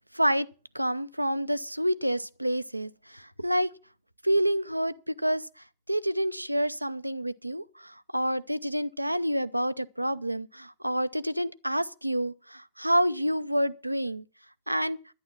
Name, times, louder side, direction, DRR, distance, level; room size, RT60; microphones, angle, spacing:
voice 1, 0.1-0.5 0.7-3.7 4.2-5.5 5.9-14.2 14.7-15.0, equal, 90° right, 0.5 m, -28 dB
11.5 x 10.0 x 6.1 m
figure-of-eight pair, 90°, 0 cm